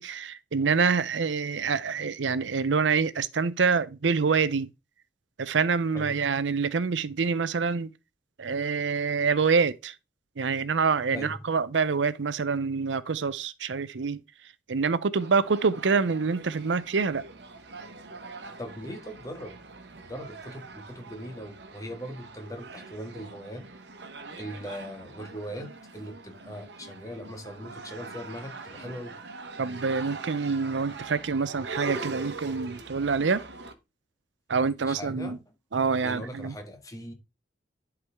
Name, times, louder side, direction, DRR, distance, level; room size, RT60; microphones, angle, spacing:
voice 1, 0.0-4.7 5.4-7.9 8.4-9.9 10.4-14.2 14.7-17.2 29.6-33.4 34.5-35.4 35.7-36.5, right 5 dB, 90° right, 0.6 m, -26 dB
sound 1, 15.1-33.7, right 3 dB, 70° right, 1.2 m, -42 dB
voice 2, 18.6-19.5 20.0-23.6 24.3-29.1 34.8-35.4 36.0-37.1, equal, 20° left, 1.7 m, -40 dB
11.0 x 4.7 x 3.6 m
head